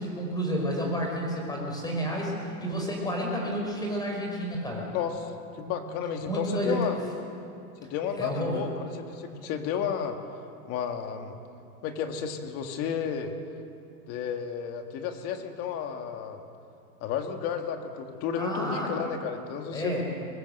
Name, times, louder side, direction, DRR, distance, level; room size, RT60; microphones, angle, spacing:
voice 1, 0.0-4.9 6.2-6.8 8.1-8.6 18.4-18.9 19.7-20.0, equal, 10° left, 0 dB, 5.3 m, -30 dB
voice 2, 4.9-7.0 7.8-8.7 9.0-10.2 10.6-11.4 11.8-13.3 14.1-16.4 17.0-20.0, left 7 dB, 30° left, 5 dB, 2.0 m, -32 dB
23.5 x 20.0 x 8.0 m, 2.5 s
supercardioid pair, 155°, 46 cm